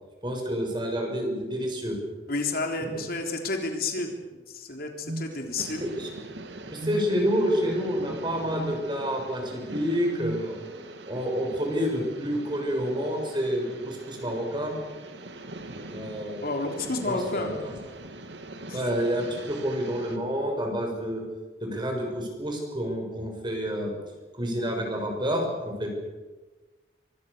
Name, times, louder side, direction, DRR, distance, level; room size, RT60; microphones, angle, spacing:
voice 1, 0.2-2.0 2.8-3.0 6.0-6.1 6.7-14.7 15.9-16.6 17.1-17.7 18.7-21.2 21.6-23.9 24.4-26.0, equal, 25° right, 2 dB, 6.6 m, -29 dB
voice 2, 2.3-4.2 4.5-5.8 16.4-17.6 18.7-18.8, left 2 dB, 60° left, 4 dB, 3.6 m, -30 dB
sound 1, 5.0-5.3 6.8-7.1 8.5-8.8 10.2-10.5, right 1 dB, 50° right, 1.2 m, -33 dB
sound 2, 5.6-20.2, right 2 dB, 85° right, 2.5 m, -43 dB
24.5 x 24.5 x 6.8 m, 1.2 s
head